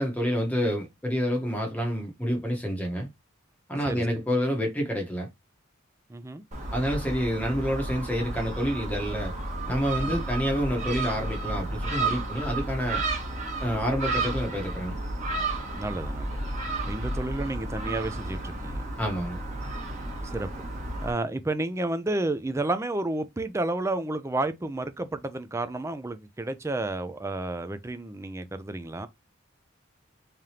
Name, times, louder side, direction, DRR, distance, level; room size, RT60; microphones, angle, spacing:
voice 1, 0.0-3.1 3.7-5.3 6.7-9.3 9.7-13.0 13.6-15.0 19.0-19.4, equal, 10° left, 0.9 m, -28 dB
voice 2, 6.1-6.4 10.0-10.3 15.8-16.4 16.9-18.8 20.2-20.5 21.0-29.1, right 2 dB, 15° right, 0.4 m, -31 dB
Gull seagull, 6.5-21.1, right 2 dB, 35° right, 1.2 m, -32 dB
3.7 x 3.3 x 2.8 m
head